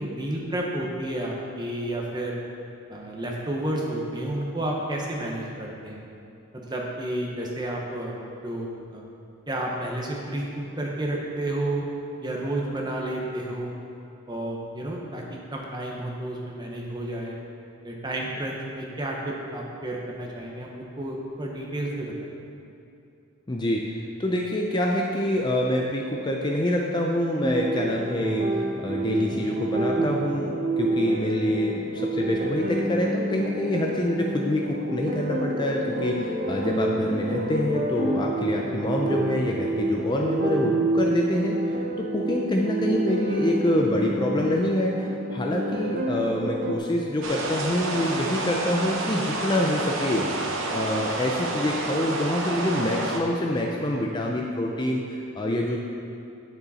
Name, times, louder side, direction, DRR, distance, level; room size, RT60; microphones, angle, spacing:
voice 1, 0.0-2.4 2.9-6.0 6.5-8.1 8.4-9.0 9.5-11.9 12.2-13.7 14.3-17.4 17.8-22.1, right 1 dB, 20° right, -2 dB, 1.0 m, -31 dB
voice 2, 23.5-50.3 50.7-55.8, left 1 dB, 20° left, 0 dB, 0.5 m, -26 dB
sound 1, 27.4-46.8, right 1 dB, 35° right, 0.7 m, -28 dB
sound 2, 47.2-53.2, right 2 dB, 65° right, 0.9 m, -29 dB
9.7 x 6.8 x 4.2 m, 2.7 s
head